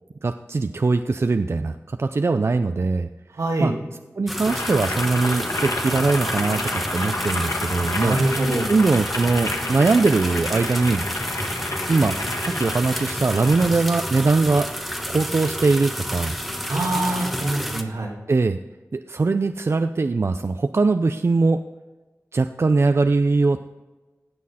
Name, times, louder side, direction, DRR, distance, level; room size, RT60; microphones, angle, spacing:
voice 1, 0.2-3.1 3.6-3.7 4.2-6.6 6.9-8.4 8.7-11.1 11.9-12.2 12.4-14.7 15.1-16.4 18.3-18.6 18.9-21.6 22.3-23.6, right 3 dB, 55° right, 9 dB, 0.4 m, -21 dB
voice 2, 3.4-3.7 8.0-8.7 16.7-18.2, right 1 dB, 85° right, 0 dB, 2.0 m, -24 dB
Boiling, 4.3-13.8, left 2 dB, 65° left, 1.5 m, -30 dB
sound 1, 4.3-17.8, equal, ahead, 1.1 m, -30 dB
17.0 x 6.3 x 4.2 m, 1.2 s
wide cardioid pair, 55°, 5 cm